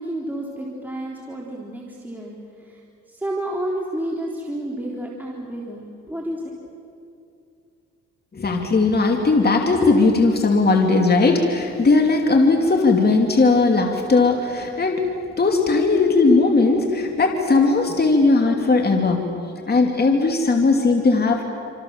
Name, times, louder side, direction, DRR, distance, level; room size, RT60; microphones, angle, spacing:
voice 1, 0.0-2.8 3.1-6.5, right 1 dB, 5° right, -3 dB, 3.7 m, -30 dB
voice 2, 8.3-15.1 15.4-19.2 19.7-21.4, left 3 dB, 30° left, 3 dB, 2.9 m, -18 dB
27.5 x 27.0 x 7.4 m, 2.6 s
cardioid pair, 90°, 30 cm